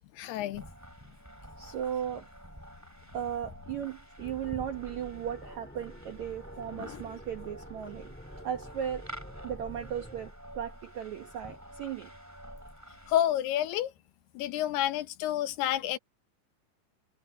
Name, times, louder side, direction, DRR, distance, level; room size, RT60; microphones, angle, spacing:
voice 1, 0.2-0.6 6.8-7.0 13.1-13.9 14.4-16.0, left 12 dB, 75° left, 2.8 m, -29 dB
sound 1, 0.5-13.2, equal, 5° right, 6.2 m, -49 dB
voice 2, 1.6-2.3 3.1-8.1 8.4-9.1 9.4-12.1, right 9 dB, 70° right, 1.7 m, -36 dB
sound 2, 4.2-10.3, equal, 10° left, 0.4 m, -48 dB
omnidirectional pair, 5.0 m